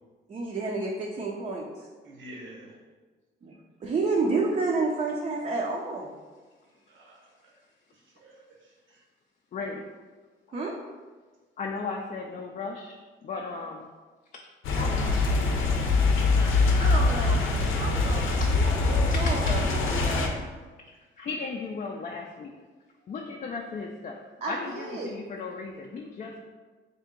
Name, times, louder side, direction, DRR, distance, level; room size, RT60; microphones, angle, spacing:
voice 1, 0.3-1.7 3.4-3.5 3.8-6.1 10.5-10.7 16.8-17.4 17.7-20.3 24.4-25.1, right 3 dB, 35° right, -2 dB, 0.5 m, -30 dB
voice 2, 2.0-2.7 6.7-7.3 7.9-9.0 23.0-23.1, right 1 dB, 75° right, -3 dB, 0.9 m, -49 dB
voice 3, 9.5-9.8 11.6-13.0 13.2-13.9 14.3-14.4 14.7-15.8 16.5-16.6 18.3-18.4 19.1-19.5 21.2-22.5 23.1-24.2 24.5-26.4, left 4 dB, 40° left, 0 dB, 0.4 m, -36 dB
sound 1, 14.6-20.3, left 3 dB, 85° left, 0.6 m, -23 dB
3.5 x 2.8 x 3.6 m, 1.4 s
cardioid pair, 90°, 20 cm